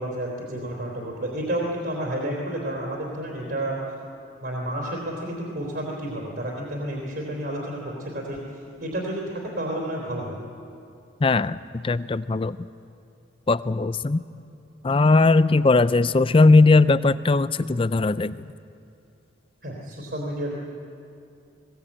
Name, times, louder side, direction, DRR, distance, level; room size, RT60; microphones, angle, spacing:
voice 1, 0.0-3.8 4.4-8.4 8.8-10.4 19.6-20.5, right 1 dB, 55° right, -2 dB, 3.6 m, -30 dB
voice 2, 11.2-12.6 13.5-14.2 14.8-18.4, left 3 dB, 25° left, 15 dB, 0.4 m, -19 dB
21.0 x 18.0 x 8.7 m, 2.6 s
head